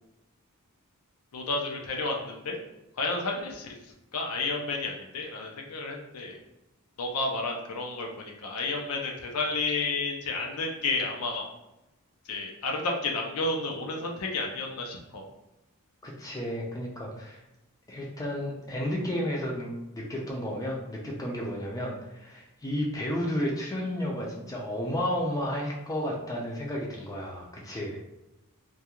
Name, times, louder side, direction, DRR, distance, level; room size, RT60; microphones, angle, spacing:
voice 1, 1.3-2.6 3.0-3.8 4.1-6.4 7.0-11.5 12.3-15.3, left 3 dB, 80° left, 1 dB, 0.5 m, -31 dB
voice 2, 16.0-17.4 17.9-28.0, equal, 15° left, -2 dB, 0.4 m, -32 dB
2.3 x 2.3 x 2.9 m, 0.94 s
head